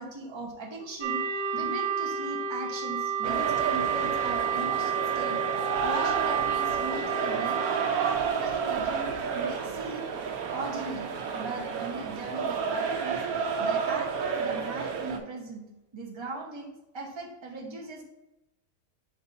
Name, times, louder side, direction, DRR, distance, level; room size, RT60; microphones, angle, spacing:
voice 1, 0.0-5.4 5.8-7.6 7.9-10.1 10.5-13.2 13.6-15.6 15.9-18.0, right 3 dB, 20° right, 0 dB, 0.9 m, -38 dB
sound 1, 1.0-9.0, right 7 dB, 55° right, 0.5 m, -30 dB
sound 2, 3.2-15.2, right 6 dB, 75° right, 1.2 m, -31 dB
5.3 x 5.0 x 4.2 m, 0.91 s
omnidirectional pair, 1.6 m